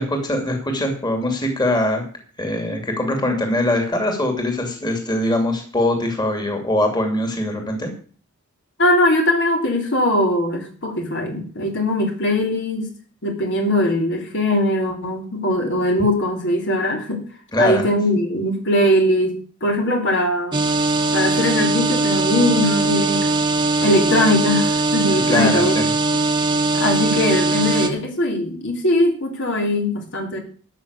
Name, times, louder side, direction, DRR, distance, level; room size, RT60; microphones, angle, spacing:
voice 1, 0.0-2.0 2.4-7.9 17.5-17.9 25.1-25.9, left 1 dB, 20° left, 3 dB, 2.7 m, -22 dB
voice 2, 8.8-12.9 13.2-17.2 17.6-20.6 21.1-23.3 23.8-25.8 26.7-30.4, left 1 dB, 55° left, 2 dB, 3.0 m, -20 dB
sound 1, 20.5-27.9, right 2 dB, 20° right, 1.6 m, -20 dB
13.5 x 6.3 x 8.1 m, 0.43 s
head